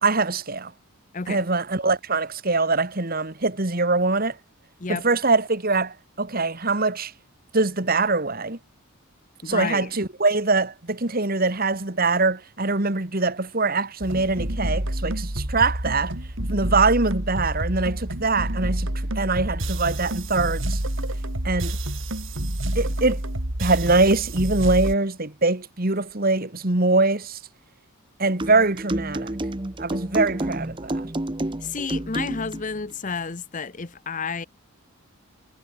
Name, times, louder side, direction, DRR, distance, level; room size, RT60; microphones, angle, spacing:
voice 1, 0.0-0.7 1.3-4.4 4.9-7.1 7.5-8.6 9.5-16.1 16.5-20.8 21.4-21.8 22.8-23.2 23.6-27.4 28.2-29.3 29.8-31.1, right 3 dB, 45° right, 1.9 m, -23 dB
voice 2, 9.4-9.9 31.6-34.5, left 5 dB, 35° left, 0.8 m, -31 dB
sound 1, 14.0-25.0, right 1 dB, 60° right, 3.6 m, -28 dB
sound 2, 28.4-32.7, right 1 dB, 20° right, 0.9 m, -29 dB
head